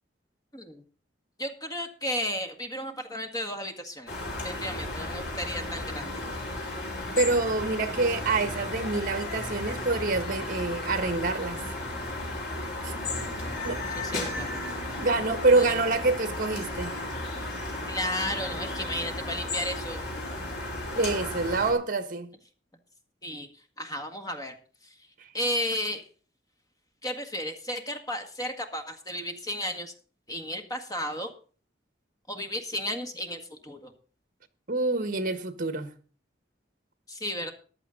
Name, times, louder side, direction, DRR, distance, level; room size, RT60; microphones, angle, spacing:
voice 1, 0.5-0.8 1.4-4.1 4.4-6.1 13.4-13.6 14.0-14.6 15.5-15.8 17.9-20.0 23.2-23.5 23.8-24.6 25.3-26.0 27.0-29.9 30.3-31.3 32.3-33.9 37.1-37.5, left 1 dB, 20° left, 1.8 m, -33 dB
sound 1, 4.1-21.7, left 2 dB, 65° left, 4.9 m, -34 dB
voice 2, 7.1-11.6 12.8-12.9 13.6-13.8 15.0-17.0 20.9-22.3 34.7-35.9, right 3 dB, 50° right, 1.5 m, -26 dB
14.5 x 10.5 x 3.9 m
head